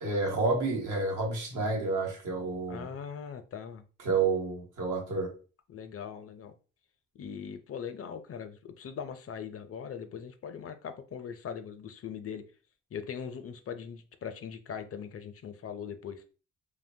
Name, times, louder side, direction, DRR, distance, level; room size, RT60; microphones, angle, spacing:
voice 1, 0.0-2.9 4.0-5.3, right 3 dB, 75° right, 1.0 m, -29 dB
voice 2, 2.7-3.8 5.7-6.5 7.2-12.4 12.9-16.2, left 7 dB, 50° left, 0.5 m, -40 dB
3.0 x 2.2 x 2.6 m
cardioid pair, 70°, 31 cm